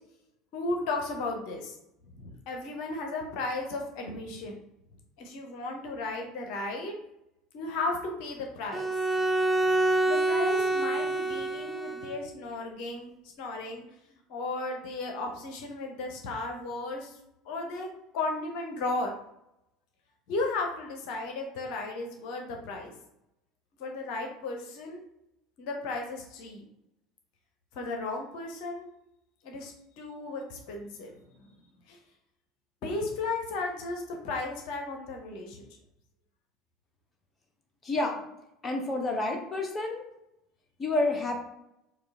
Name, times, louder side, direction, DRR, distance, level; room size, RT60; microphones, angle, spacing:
voice 1, 0.5-1.7 2.0-4.5 5.2-7.0 7.5-8.9 10.1-13.1 13.4-13.8 14.3-17.1 17.4-17.9 18.1-19.1 20.3-22.9 23.8-25.0 25.6-26.6 27.7-28.9 29.4-31.1 31.4-31.5 31.9-32.0 32.8-35.6, left 2 dB, 55° left, 2 dB, 0.7 m, -35 dB
Bowed string instrument, 8.7-12.2, right 2 dB, 15° right, 0.4 m, -27 dB
voice 2, 37.8-38.2 38.6-40.0 40.8-41.4, left 2 dB, 25° left, 2 dB, 0.7 m, -29 dB
4.7 x 2.3 x 3.6 m, 0.83 s
figure-of-eight pair, 65°, 0 cm